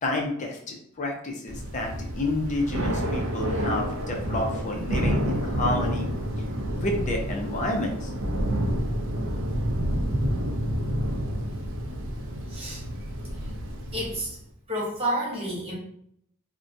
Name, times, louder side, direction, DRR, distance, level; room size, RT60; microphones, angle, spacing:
voice 1, 0.0-6.1 6.8-8.1, left 2 dB, 35° left, 1 dB, 0.5 m, -30 dB
Thunder / Rain, 1.5-14.4, equal, 70° right, 0.5 m, -29 dB
voice 2, 13.9-14.4 14.7-15.7, right 1 dB, 25° right, -4 dB, 0.8 m, -29 dB
2.5 x 2.1 x 2.5 m, 0.68 s
head